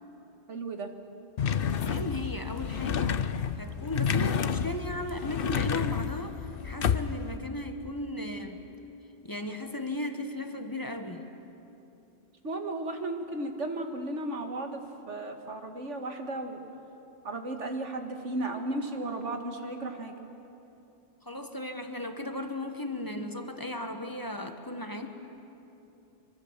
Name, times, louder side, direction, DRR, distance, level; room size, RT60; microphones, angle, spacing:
voice 1, 0.5-0.9 12.4-14.8 15.1-16.6 17.2-20.1, right 2 dB, 85° right, 5 dB, 2.2 m, -34 dB
sound 1, 1.4-7.4, left 7 dB, 55° left, 0.9 m, -30 dB
voice 2, 1.7-3.2 3.6-6.4 6.6-8.6 9.2-11.3 21.2-25.1, left 1 dB, 20° left, 6 dB, 1.4 m, -36 dB
24.5 x 24.5 x 7.4 m, 2.9 s
omnidirectional pair, 1.2 m